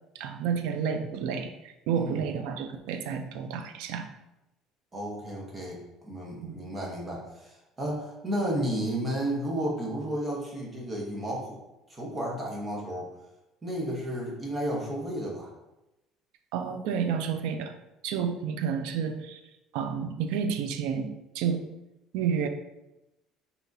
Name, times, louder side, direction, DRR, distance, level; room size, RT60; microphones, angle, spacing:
voice 1, 0.1-4.1 6.4-6.6 16.5-17.8 18.0-19.4 19.7-21.7 22.1-22.5, right 7 dB, 85° right, 7 dB, 0.4 m, -30 dB
voice 2, 4.9-11.6 11.9-13.1 13.6-15.5, right 1 dB, 15° right, -2 dB, 0.9 m, -32 dB
5.9 x 2.8 x 2.7 m, 0.95 s
cardioid pair, 175°, 0 cm